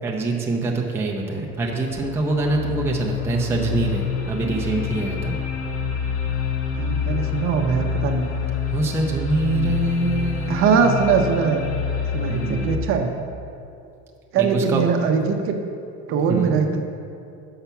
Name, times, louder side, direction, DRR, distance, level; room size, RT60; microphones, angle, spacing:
voice 1, 0.0-5.4 8.7-10.8 12.3-12.8 14.4-14.8 16.3-16.6, right 2 dB, 10° right, -1 dB, 0.5 m, -24 dB
sound 1, 1.4-12.8, left 6 dB, 90° left, 1.0 m, -27 dB
voice 2, 6.8-8.3 10.5-11.6 12.1-13.1 14.3-15.5 16.1-16.8, right 6 dB, 45° right, 4 dB, 0.7 m, -21 dB
5.7 x 5.6 x 6.9 m, 2.6 s
cardioid pair, 155°, 30 cm